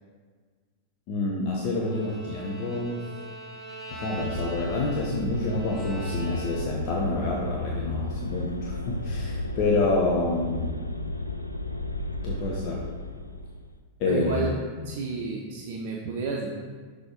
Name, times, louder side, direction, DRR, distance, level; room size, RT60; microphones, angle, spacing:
voice 1, 1.1-3.1 3.9-10.8 12.2-12.8 14.0-14.5, left 3 dB, 45° left, -3 dB, 0.8 m, -28 dB
Bowed string instrument, 1.8-7.0, right 3 dB, 25° right, 1.1 m, -42 dB
sound 1, 4.1-13.7, left 1 dB, 85° left, 0.4 m, -33 dB
voice 2, 14.1-14.5 14.8-16.5, right 4 dB, 50° right, -1 dB, 0.6 m, -30 dB
6.0 x 3.5 x 5.1 m, 1.5 s
figure-of-eight pair, 90°, 0 cm